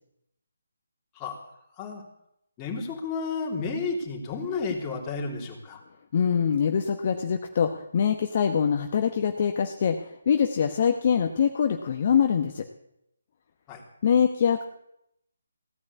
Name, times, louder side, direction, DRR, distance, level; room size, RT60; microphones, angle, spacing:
voice 1, 2.6-5.8 13.7-13.8, left 4 dB, 20° left, 0 dB, 3.3 m, -32 dB
voice 2, 6.1-12.7 14.0-14.6, left 7 dB, 40° left, 5 dB, 1.1 m, -24 dB
16.5 x 9.7 x 8.3 m, 0.79 s
figure-of-eight pair, 145°, 0 cm